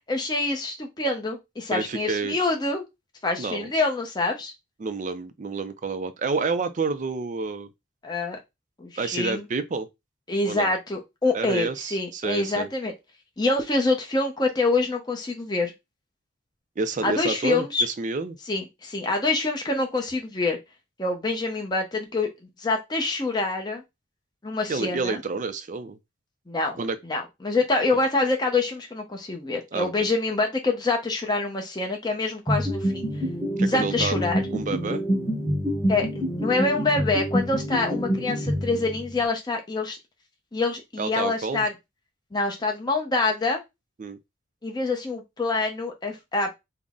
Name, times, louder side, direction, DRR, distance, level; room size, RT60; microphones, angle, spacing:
voice 1, 0.1-2.8 3.2-4.5 8.0-8.4 8.8-9.4 10.3-12.9 13.4-15.7 17.0-17.8 18.5-20.6 21.0-22.3 22.6-23.8 24.4-25.2 26.5-26.8 27.1-33.1 33.6-34.4 35.9-36.1 36.4-40.0 40.5-41.7 42.3-43.6 44.6-46.5, left 3 dB, 20° left, 0.6 m, -26 dB
voice 2, 1.7-2.4 3.4-3.7 4.8-7.7 9.0-9.9 10.5-10.7 11.3-12.7 16.8-18.4 24.7-26.0 26.8-27.0 29.7-29.9 33.6-34.2 34.5-35.0 41.0-41.7 44.0-44.2, right 4 dB, 40° right, 0.4 m, -29 dB
sound 1, 32.5-39.2, equal, ahead, 1.0 m, -27 dB
3.8 x 2.1 x 3.5 m
head